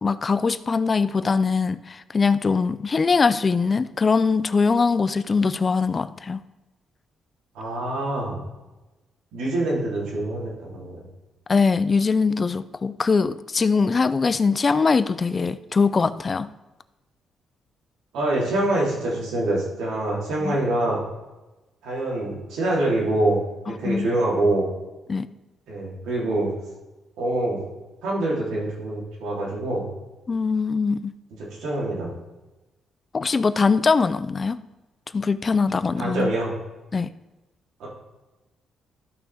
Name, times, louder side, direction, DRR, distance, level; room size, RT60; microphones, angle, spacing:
voice 1, 0.0-6.4 11.5-16.5 20.4-20.6 23.7-24.1 25.1-25.3 30.3-31.2 33.1-34.6 35.1-36.3 36.9-37.1, left 4 dB, 35° left, 14 dB, 0.4 m, -22 dB
voice 2, 7.5-8.4 9.3-11.0 18.1-21.0 21.8-23.4 23.8-24.7 25.7-26.5 27.2-27.6 28.0-29.9 31.6-32.1 36.0-36.5 37.8-37.9, right 2 dB, 85° right, -5 dB, 3.2 m, -25 dB
13.0 x 6.0 x 3.5 m, 1.1 s
cardioid pair, 90°, 0 cm